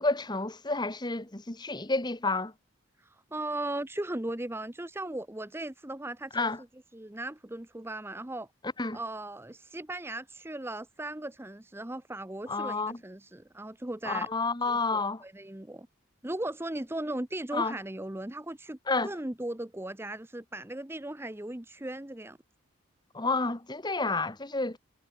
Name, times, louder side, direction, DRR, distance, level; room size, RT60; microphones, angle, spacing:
voice 1, 0.0-2.5 6.3-6.6 8.8-9.0 12.5-13.0 14.0-15.2 17.5-17.8 18.9-19.1 23.1-24.8, left 3 dB, 20° left, 1.3 m, -30 dB
voice 2, 3.0-6.5 6.9-8.5 8.9-14.3 14.7-15.9 16.2-22.4, right 1 dB, 10° right, 0.7 m, -37 dB
head